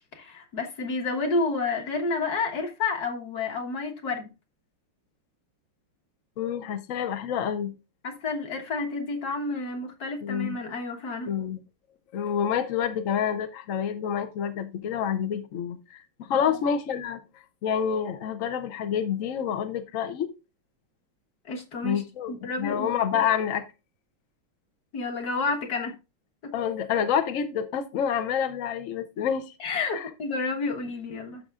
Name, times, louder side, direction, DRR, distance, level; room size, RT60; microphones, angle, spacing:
voice 1, 0.1-4.3 8.0-11.3 16.4-16.6 21.5-22.0 22.3-23.0 24.9-26.0 26.4-26.5 29.6-31.4, left 3 dB, 50° left, 1.7 m, -30 dB
voice 2, 6.4-7.7 10.2-10.6 11.3-11.6 12.1-17.2 17.6-20.3 21.8-23.6 26.5-29.5 29.9-30.1, left 8 dB, 75° left, 0.7 m, -28 dB
11.5 x 6.5 x 2.4 m
omnidirectional pair, 2.3 m